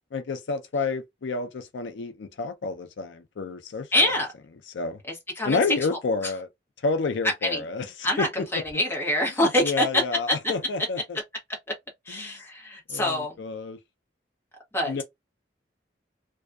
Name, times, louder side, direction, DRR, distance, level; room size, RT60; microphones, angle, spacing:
voice 1, 0.1-4.1 4.7-5.0 5.4-6.5 6.8-7.9 8.2-8.3 9.4-11.0 12.2-12.3 12.9-13.8 14.9-15.0, left 4 dB, 80° left, 0.5 m, -29 dB
voice 2, 3.9-4.3 5.1-5.6 6.2-6.3 7.2-7.6 8.0-10.4 12.1-13.4 14.7-15.0, left 1 dB, 15° left, 0.9 m, -25 dB
2.5 x 2.3 x 2.3 m
head